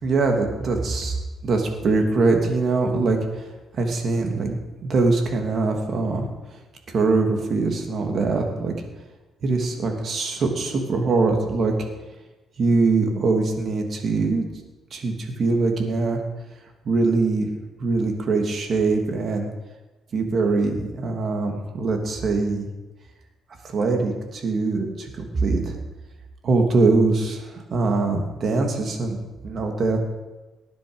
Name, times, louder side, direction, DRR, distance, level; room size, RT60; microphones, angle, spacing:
voice 1, 0.0-1.2 1.4-3.5 3.7-6.3 6.5-6.6 6.9-8.7 9.4-11.7 12.6-14.5 14.9-16.2 16.8-17.5 17.8-19.5 20.1-22.7 23.6-25.8 26.4-29.2 29.4-30.0, right 3 dB, 55° right, 3 dB, 3.0 m, -22 dB
19.0 x 10.5 x 5.3 m, 1.1 s
cardioid pair, 90°, 0 cm